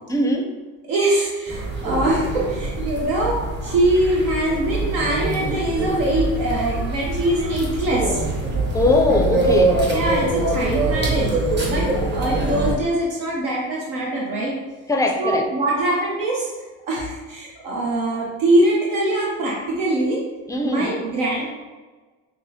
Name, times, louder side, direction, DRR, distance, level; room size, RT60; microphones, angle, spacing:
voice 1, 0.1-0.5 8.7-9.8 14.9-15.4 20.5-20.9, left 2 dB, 10° left, 3 dB, 0.4 m, -20 dB
voice 2, 0.9-8.2 9.9-11.4 11.7-14.5 15.2-16.5 16.9-20.2 20.6-21.5, right 1 dB, 75° right, -3 dB, 0.8 m, -22 dB
sound 1, 1.5-12.8, right 2 dB, 25° right, 0.9 m, -24 dB
5.9 x 2.2 x 2.8 m, 1.3 s
supercardioid pair, 85°, 40 cm